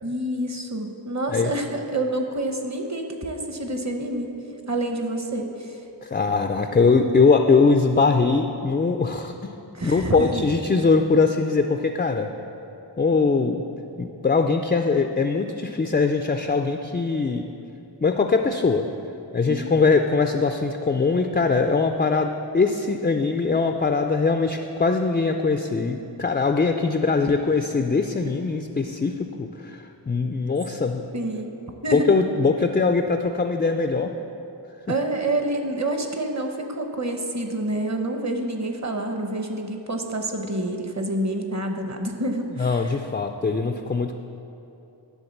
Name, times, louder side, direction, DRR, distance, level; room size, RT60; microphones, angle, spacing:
voice 1, 0.0-4.3 4.7-5.8 9.7-10.4 19.5-19.7 31.1-31.5 31.8-32.1 34.9-43.0, right 1 dB, 35° right, 4 dB, 0.9 m, -28 dB
voice 2, 6.0-9.5 9.8-12.3 13.0-13.6 14.0-17.5 18.0-18.8 19.3-31.1 31.9-34.1 42.6-44.2, left 4 dB, 20° left, 6 dB, 0.3 m, -21 dB
11.0 x 3.7 x 7.1 m, 2.9 s
wide cardioid pair, 50°, 46 cm